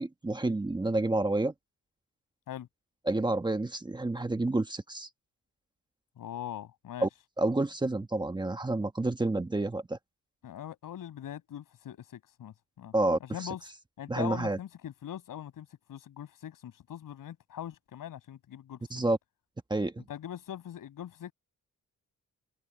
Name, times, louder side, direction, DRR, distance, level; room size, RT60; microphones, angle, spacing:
voice 1, 0.0-1.5 3.1-5.1 7.0-7.1 7.4-10.0 12.9-13.2 14.1-14.6 18.9-19.2 19.7-20.0, right 2 dB, 15° right, 1.2 m, -29 dB
voice 2, 6.2-7.1 10.4-12.9 13.2-13.6 14.0-19.1 20.1-21.3, left 10 dB, 80° left, 6.4 m, -42 dB
cardioid pair, 130°, 33 cm